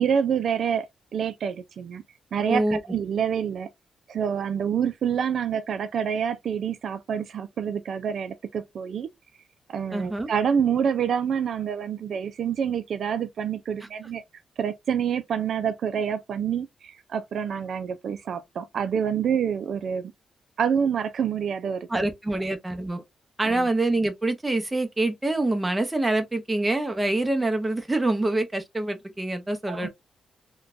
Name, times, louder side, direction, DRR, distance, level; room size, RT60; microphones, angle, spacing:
voice 1, 0.0-2.0 2.3-3.7 4.1-9.1 9.7-14.2 14.6-20.1 20.6-22.0 23.4-23.7 29.7-29.9, right 7 dB, 60° right, 0.3 m, -27 dB
voice 2, 2.5-2.8 9.9-10.3 21.9-23.0 23.4-29.9, right 2 dB, 10° right, 0.7 m, -25 dB
3.7 x 2.2 x 2.4 m
wide cardioid pair, 145°, 0 cm